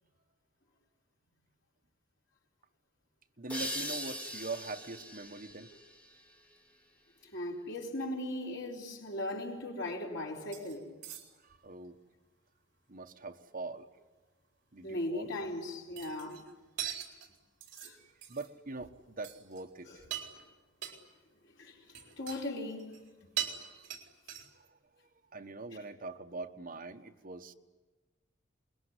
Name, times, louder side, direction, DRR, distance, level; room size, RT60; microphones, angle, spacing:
voice 1, 3.4-5.7 11.4-12.0 12.9-13.9 14.7-15.3 18.3-20.0 24.5-24.7 25.3-27.5, right 3 dB, 45° right, 1.4 m, -42 dB
sound 1, 3.5-6.9, equal, 5° left, 2.8 m, -41 dB
voice 2, 7.3-10.9 14.8-16.4 17.8-18.0 19.9-20.0 21.6-22.9, left 1 dB, 65° left, 4.4 m, -38 dB
sound 2, 10.5-10.8 11.0-11.5 16.0-16.5 16.8-17.9 18.2-18.5 18.8-19.0 19.2-19.6 20.0-20.5 20.8-21.0 21.9-22.4 22.7-23.1 23.4-24.7, right 10 dB, 60° right, 4.4 m, -41 dB
27.5 x 21.5 x 9.8 m
head